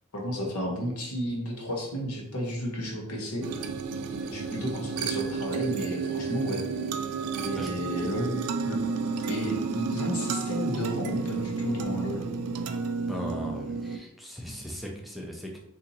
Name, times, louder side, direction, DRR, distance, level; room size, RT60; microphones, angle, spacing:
voice 1, 0.1-3.5 4.3-6.6 7.4-8.8 9.2-12.3, equal, 75° left, -1 dB, 1.0 m, -32 dB
sound 1, 3.4-14.0, right 5 dB, 80° right, 0.4 m, -31 dB
voice 2, 13.1-15.6, equal, ahead, -1 dB, 0.4 m, -38 dB
2.8 x 2.6 x 3.9 m, 0.79 s
head